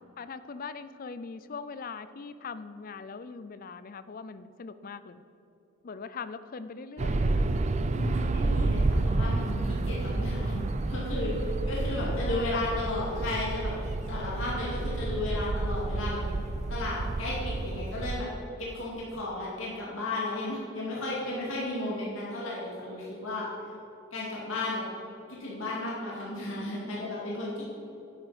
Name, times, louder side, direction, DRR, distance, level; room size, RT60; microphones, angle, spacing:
voice 1, 0.2-5.2 5.8-7.5 11.9-12.6, left 5 dB, 40° left, 13 dB, 0.4 m, -41 dB
sound 1, 7.0-18.2, right 2 dB, 30° right, 0.4 m, -30 dB
voice 2, 8.0-16.2 16.7-18.3 18.6-23.5 24.1-24.8 25.3-27.7, left 2 dB, 65° left, -6 dB, 2.3 m, -34 dB
11.0 x 8.2 x 5.1 m, 3.0 s
head